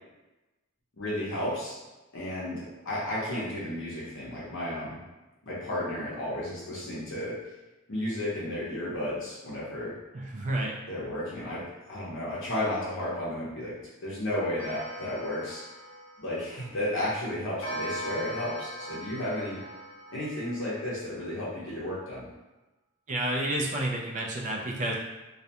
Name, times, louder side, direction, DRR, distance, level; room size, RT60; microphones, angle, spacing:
voice 1, 1.0-1.7 2.1-5.0 5.4-7.4 7.9-9.9 10.9-13.7 14.0-15.6 16.2-19.6 20.1-22.3, left 1 dB, 65° left, -7 dB, 0.7 m, -33 dB
voice 2, 10.1-10.7 23.1-25.0, right 1 dB, 35° right, -1 dB, 0.4 m, -30 dB
Clock, 14.6-16.8 17.6-21.0, equal, 25° left, 1.1 m, -40 dB
2.4 x 2.1 x 2.8 m, 1.1 s
head